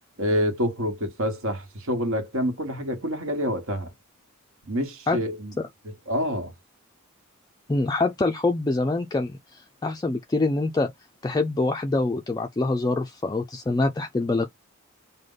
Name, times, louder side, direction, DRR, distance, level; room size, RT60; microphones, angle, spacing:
voice 1, 0.2-3.9 4.6-5.5 6.1-6.5, equal, 65° right, 1.3 m, -27 dB
voice 2, 7.7-10.9 11.2-14.5, left 2 dB, 20° left, 0.3 m, -25 dB
4.8 x 2.1 x 3.9 m
head